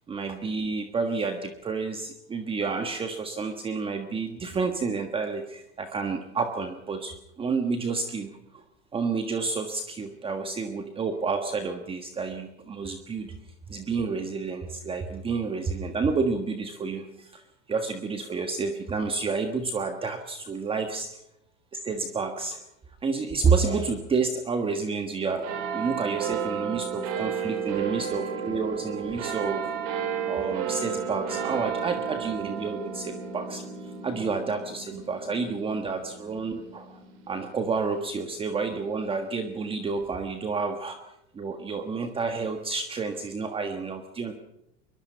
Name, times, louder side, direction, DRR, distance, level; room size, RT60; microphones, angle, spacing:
voice 1, 0.1-8.6 8.9-13.3 13.7-17.4 17.7-21.2 21.7-22.6 23.0-29.7 30.3-37.0 37.3-41.0 41.3-44.3, right 4 dB, 15° right, 6 dB, 1.5 m, -30 dB
sound 1, 25.4-38.3 39.0-39.1, right 7 dB, 55° right, 6.3 m, -33 dB
23.5 x 22.5 x 5.7 m, 0.83 s
supercardioid pair, 155°, 35 cm